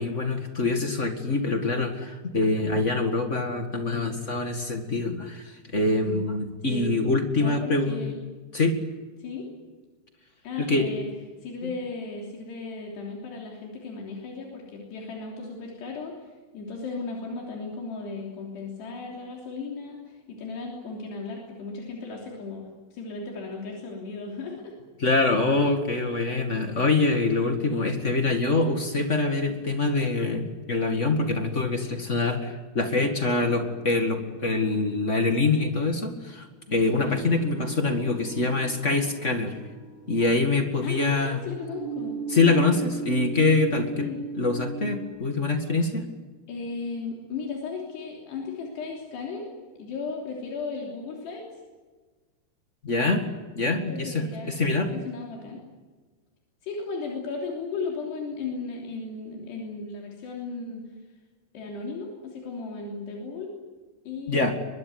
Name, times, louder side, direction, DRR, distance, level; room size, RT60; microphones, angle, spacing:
voice 1, 0.0-8.0 8.5-8.7 10.6-10.9 11.6-11.7 25.0-39.5 40.1-41.4 42.3-44.1 44.3-46.0 52.8-53.3 53.5-54.9 64.3-64.5, left 3 dB, 45° left, 5 dB, 0.9 m, -25 dB
voice 2, 7.4-8.2 9.2-9.5 10.4-11.1 11.4-16.2 16.5-24.8 27.7-27.9 37.0-37.2 40.8-42.2 44.0-44.2 46.5-49.5 49.8-51.4 53.7-54.5 54.8-55.6 56.6-60.9 61.5-63.5 64.1-64.5, left 4 dB, 80° left, -1 dB, 5.4 m, -35 dB
sound 1, 33.4-45.1, right 5 dB, 70° right, 5.8 m, -39 dB
23.0 x 22.5 x 9.5 m, 1.3 s
omnidirectional pair, 4.8 m